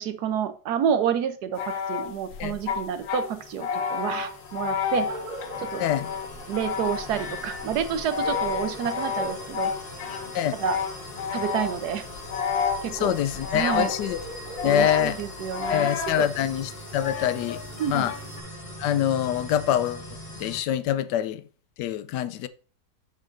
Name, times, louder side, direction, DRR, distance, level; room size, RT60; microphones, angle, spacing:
voice 1, 0.0-5.1 5.6-5.8 6.5-9.7 10.6-10.8 11.3-12.1 12.8-13.1 13.5-13.9 14.6-15.9 16.2-16.3 17.8-18.1, right 8 dB, 75° right, 1.3 m, -29 dB
sound 1, 1.5-11.9 12.3-13.1 13.4-14.2 14.6-16.2 17.0-18.4, left 6 dB, 65° left, 1.3 m, -31 dB
sound 2, 2.6-20.6, left 1 dB, 35° left, 1.5 m, -41 dB
sound 3, 4.7-15.2, right 2 dB, 55° right, 1.7 m, -42 dB
voice 2, 12.9-14.2 14.6-15.2 15.7-18.1 18.8-20.1 20.4-21.4 21.8-22.5, left 11 dB, 90° left, 1.2 m, -25 dB
7.1 x 6.5 x 2.6 m
omnidirectional pair, 1.8 m